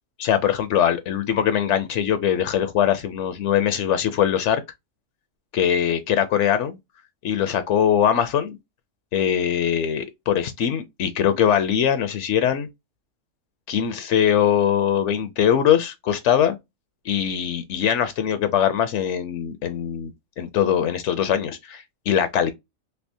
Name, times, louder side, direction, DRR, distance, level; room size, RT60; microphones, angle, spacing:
voice 1, 0.2-4.6 5.5-6.8 7.2-8.6 9.1-12.7 13.7-16.6 17.0-22.5, left 9 dB, 70° left, 0.8 m, -22 dB
3.3 x 2.8 x 2.6 m
omnidirectional pair, 1.3 m